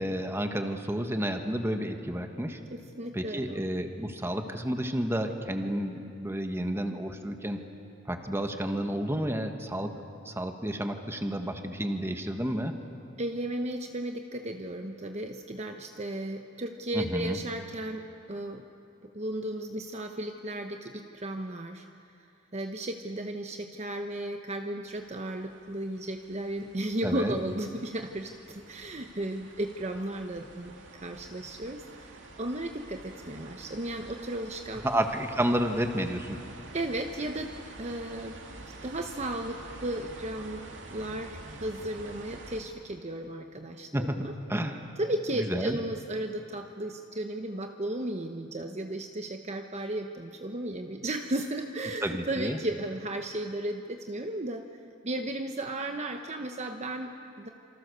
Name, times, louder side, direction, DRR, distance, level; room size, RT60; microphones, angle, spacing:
voice 1, 0.0-2.6 3.1-7.6 8.1-9.9 10.2-12.7 16.9-17.4 27.0-27.3 34.8-36.4 43.9-44.8 45.5-45.8 52.0-52.6, equal, 15° right, 5 dB, 1.5 m, -31 dB
voice 2, 2.7-3.6 13.2-18.6 19.1-21.9 22.5-34.8 36.7-38.4 38.8-40.6 40.9-44.3 45.0-54.6 55.0-57.5, right 1 dB, 35° right, 5 dB, 1.0 m, -35 dB
sound 1, 24.9-42.6, right 2 dB, 70° right, 2.6 m, -48 dB
27.5 x 24.5 x 6.8 m, 2.6 s
head